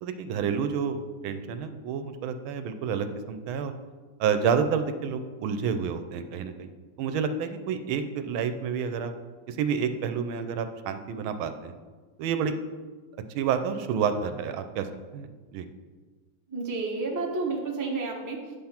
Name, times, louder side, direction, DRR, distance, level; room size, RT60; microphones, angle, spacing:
voice 1, 0.0-3.7 4.2-6.7 7.0-9.1 9.5-11.7 12.2-12.5 13.3-14.9 15.1-15.7, right 6 dB, 80° right, 9 dB, 1.4 m, -29 dB
voice 2, 16.5-18.6, right 3 dB, 20° right, 0 dB, 0.5 m, -31 dB
9.2 x 5.7 x 4.3 m, 1.4 s
omnidirectional pair, 2.3 m